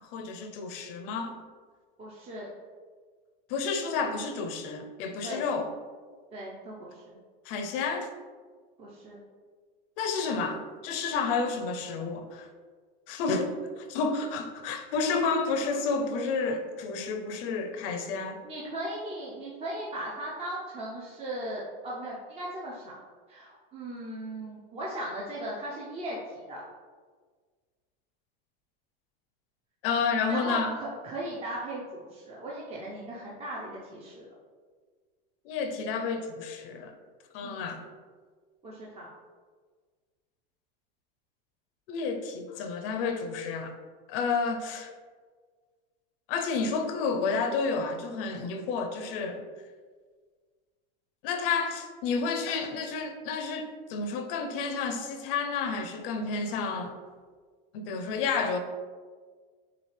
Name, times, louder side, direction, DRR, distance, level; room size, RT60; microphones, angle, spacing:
voice 1, 0.0-1.4 3.5-5.7 7.5-8.1 10.0-12.5 13.1-18.4 29.8-30.7 35.4-36.9 37.3-37.9 41.9-43.7 44.1-44.9 46.3-49.4 51.2-56.9 57.7-58.6, left 4 dB, 65° left, 6 dB, 0.7 m, -30 dB
voice 2, 2.0-2.5 5.2-5.4 6.3-7.2 8.8-9.2 18.4-22.9 23.3-26.6 30.3-34.2 37.4-37.6 38.6-39.1, right 1 dB, 20° right, -5 dB, 0.7 m, -37 dB
6.6 x 2.4 x 3.3 m, 1.5 s
supercardioid pair, 140°, 31 cm